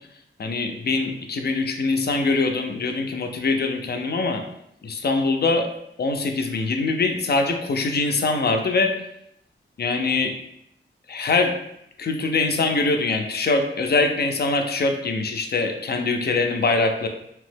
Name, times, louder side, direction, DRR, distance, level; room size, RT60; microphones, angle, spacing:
voice 1, 0.4-4.4 4.8-5.7 6.0-9.0 9.8-10.3 11.1-11.5 12.0-17.1, left 3 dB, 50° left, 4 dB, 0.4 m, -23 dB
2.9 x 2.1 x 3.2 m, 0.76 s
wide cardioid pair, 85°, 21 cm